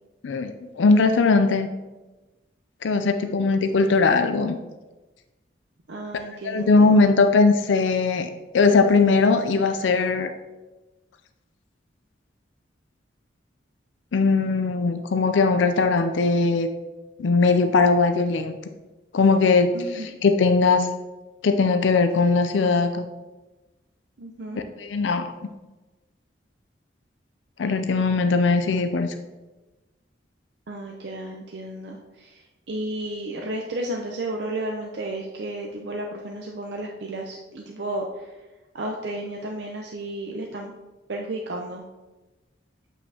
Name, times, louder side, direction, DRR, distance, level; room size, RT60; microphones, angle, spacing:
voice 1, 0.2-1.7 2.8-4.6 6.4-10.3 14.1-16.7 17.2-18.6 19.1-19.7 20.2-20.9 21.4-23.0 24.8-25.3 27.6-29.1, left 4 dB, 85° left, 8 dB, 0.4 m, -20 dB
voice 2, 2.9-3.5 5.9-7.1 19.7-20.2 24.2-24.6 30.7-38.4 38.7-40.7 41.1-41.8, right 1 dB, 65° right, 0 dB, 0.6 m, -33 dB
8.1 x 5.5 x 2.8 m, 1.1 s
head